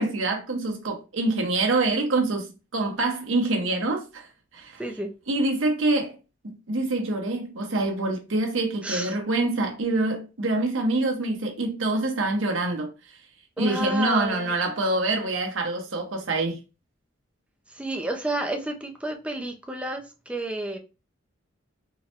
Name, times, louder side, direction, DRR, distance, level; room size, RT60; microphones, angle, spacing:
voice 1, 0.0-4.3 4.5-4.8 5.3-6.2 6.4-12.9 13.6-16.6, right 2 dB, 70° right, 0.8 m, -25 dB
voice 2, 4.8-5.1 8.8-9.2 13.6-14.5 17.7-20.8, right 1 dB, 5° right, 0.4 m, -31 dB
3.9 x 2.1 x 2.8 m
head